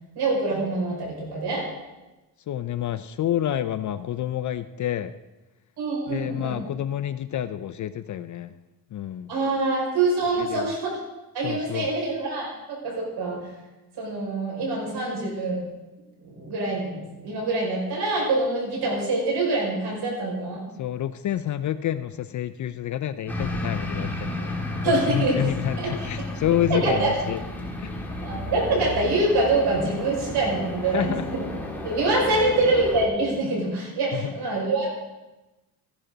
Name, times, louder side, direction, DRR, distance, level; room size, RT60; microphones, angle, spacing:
voice 1, 0.2-1.7 5.8-6.6 9.3-11.0 11.3-13.5 14.0-15.6 16.2-20.6 24.8-25.4 25.8-26.1 26.7-27.1 28.2-31.4 31.8-34.9, right 2 dB, 75° right, -2 dB, 5.5 m, -25 dB
voice 2, 2.5-5.1 6.1-8.5 8.9-9.3 10.4-10.7 11.4-11.9 20.8-24.6 24.8-27.4 27.8-27.9 30.9-31.2 32.3-32.4 34.1-34.3, left 11 dB, 50° left, 12 dB, 0.5 m, -28 dB
sound 1, 23.3-33.1, left 2 dB, 5° left, 2.0 m, -32 dB
15.0 x 11.0 x 3.9 m, 1.1 s
cardioid pair, 115°, 39 cm